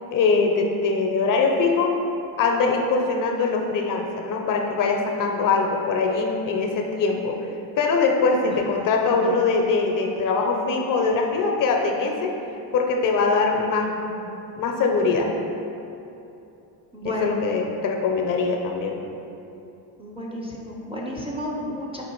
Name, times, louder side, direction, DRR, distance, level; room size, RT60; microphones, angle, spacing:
voice 1, 0.1-1.9 2.4-7.4 7.8-12.3 12.7-15.3 17.0-19.0, left 4 dB, 45° left, 2 dB, 0.5 m, -22 dB
voice 2, 8.4-9.4 16.9-17.4 20.0-22.0, equal, 15° right, -3 dB, 0.5 m, -33 dB
4.4 x 2.5 x 4.3 m, 2.8 s
supercardioid pair, 90°, 46 cm